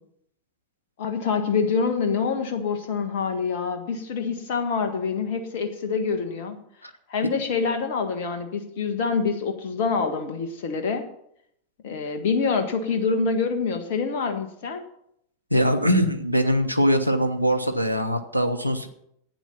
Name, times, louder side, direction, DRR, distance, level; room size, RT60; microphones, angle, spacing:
voice 1, 1.0-6.6 7.1-11.1 11.8-14.8, left 5 dB, 50° left, 6 dB, 1.4 m, -26 dB
voice 2, 15.5-18.9, equal, 90° left, 8 dB, 1.1 m, -22 dB
12.0 x 9.3 x 5.8 m, 0.73 s
figure-of-eight pair, 90°, 0 cm